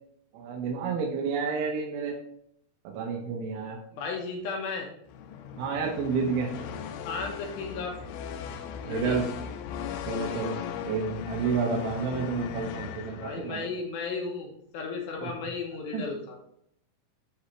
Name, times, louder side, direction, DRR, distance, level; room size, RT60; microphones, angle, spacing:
voice 1, 0.3-2.1 2.8-3.8 5.6-6.5 8.9-9.3 10.1-10.6 10.9-13.7 15.2-15.3 15.9-16.0, right 5 dB, 90° right, 0 dB, 3.0 m, -30 dB
voice 2, 3.9-4.9 7.0-8.0 8.8-9.2 12.6-12.7 13.2-16.4, left 4 dB, 70° left, 0 dB, 2.6 m, -34 dB
sound 1, 5.1-13.7, left 8 dB, 85° left, 2.0 m, -38 dB
10.0 x 4.0 x 3.2 m, 0.72 s
omnidirectional pair, 4.8 m